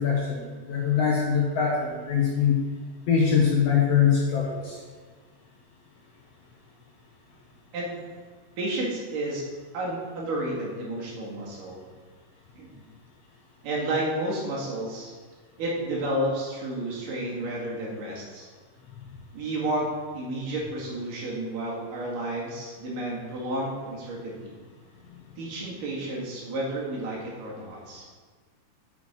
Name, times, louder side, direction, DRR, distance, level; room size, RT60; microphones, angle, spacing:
voice 1, 0.0-2.6 3.1-4.8, left 7 dB, 65° left, -2 dB, 1.8 m, -23 dB
voice 2, 8.6-9.4 9.7-11.8 12.6-12.8 13.6-15.1 15.6-18.5 19.3-24.6 25.4-28.1, right 1 dB, 80° right, -4 dB, 3.7 m, -31 dB
8.8 x 7.4 x 4.4 m, 1.5 s
omnidirectional pair, 3.8 m